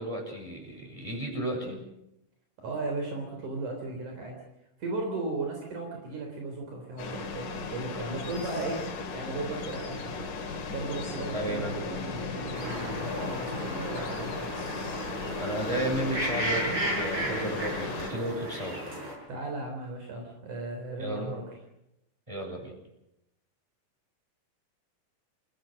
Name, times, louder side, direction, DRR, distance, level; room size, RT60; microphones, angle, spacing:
voice 1, 0.0-1.8 11.3-11.8 15.4-18.8 21.0-21.3 22.3-22.7, right 1 dB, 10° right, 0 dB, 6.6 m, -33 dB
voice 2, 2.6-4.4 4.8-8.8 9.1-10.2 10.7-14.5 19.3-21.5, right 2 dB, 65° right, 2 dB, 5.1 m, -36 dB
sound 1, 7.0-18.1, left 4 dB, 70° left, 3.9 m, -36 dB
sound 2, 12.5-19.1, right 1 dB, 40° right, 7.2 m, -34 dB
28.5 x 17.0 x 6.4 m, 0.87 s
omnidirectional pair, 3.7 m